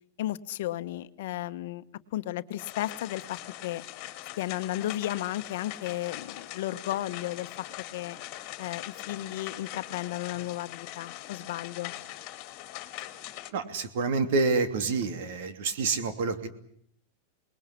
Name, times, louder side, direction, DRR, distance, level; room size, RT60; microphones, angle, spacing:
voice 1, 0.2-1.8 2.1-3.8 4.4-7.7 7.9-8.2 8.6-11.9, left 14 dB, 65° left, 12 dB, 1.1 m, -34 dB
sound 1, 2.6-13.5, left 15 dB, 40° left, 2.7 m, -42 dB
voice 2, 13.5-16.5, right 4 dB, 60° right, 9 dB, 2.9 m, -28 dB
27.0 x 20.5 x 8.4 m, 0.66 s
supercardioid pair, 160°, 0 cm